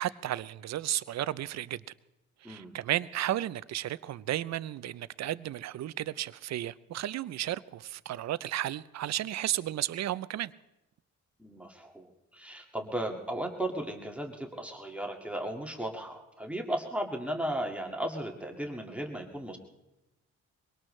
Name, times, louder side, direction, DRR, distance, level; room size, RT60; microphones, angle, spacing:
voice 1, 0.0-1.8 2.4-10.5, right 13 dB, 60° right, 0.6 m, -33 dB
voice 2, 11.4-19.6, right 1 dB, 5° right, 2.0 m, -35 dB
23.0 x 18.5 x 3.3 m
cardioid pair, 90°, 30 cm